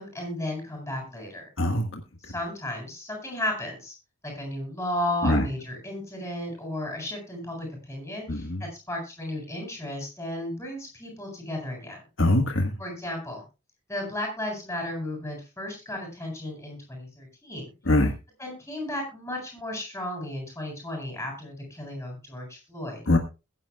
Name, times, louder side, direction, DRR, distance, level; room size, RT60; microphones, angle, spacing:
voice 1, 0.0-1.5 2.2-3.9 4.2-12.0 12.8-13.4 13.9-17.7 18.4-23.0, left 1 dB, 10° left, 0 dB, 7.9 m, -34 dB
voice 2, 1.6-1.9 5.2-5.4 8.3-8.6 12.2-12.7 17.9-18.1 23.1-23.2, left 1 dB, 60° left, 4 dB, 1.5 m, -22 dB
22.0 x 10.5 x 2.3 m, 0.29 s
head